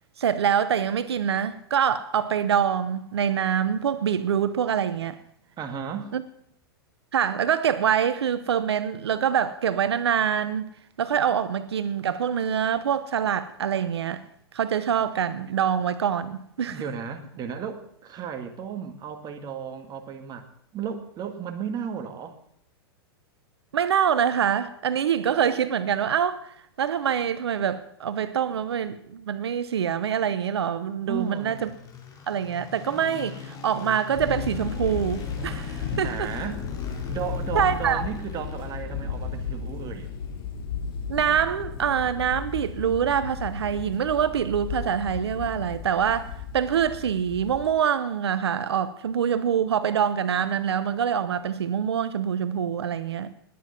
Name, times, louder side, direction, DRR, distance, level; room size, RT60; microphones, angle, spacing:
voice 1, 0.2-5.2 6.1-6.2 7.1-10.7 11.0-14.2 14.5-16.8 23.7-31.7 32.3-36.3 37.5-38.0 41.1-53.3, right 8 dB, 85° right, 0.8 m, -25 dB
voice 2, 5.6-6.1 16.7-22.4 31.1-31.7 36.0-36.6 37.1-40.1, right 7 dB, 30° right, 2.1 m, -34 dB
sound 1, 31.1-45.2, left 5 dB, 25° left, 4.6 m, -43 dB
sound 2, 34.1-47.7, left 6 dB, 60° left, 4.3 m, -34 dB
20.0 x 9.4 x 5.9 m
hypercardioid pair, 120°, 13 cm